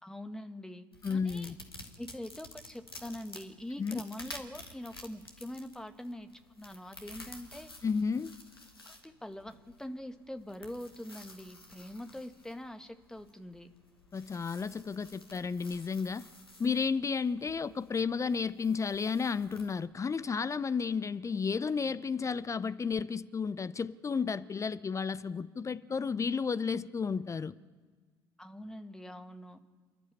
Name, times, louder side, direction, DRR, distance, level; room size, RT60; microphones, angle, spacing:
voice 1, 0.0-1.5 2.0-6.3 6.6-7.7 8.8-13.7 28.4-29.6, left 1 dB, 5° left, 1.7 m, -44 dB
sound 1, 0.9-19.8, left 2 dB, 85° left, 1.6 m, -52 dB
voice 2, 1.0-1.6 3.8-4.0 7.8-8.3 14.1-16.2 16.6-27.6, left 5 dB, 25° left, 0.7 m, -32 dB
28.5 x 11.5 x 8.8 m
figure-of-eight pair, 55°, 12 cm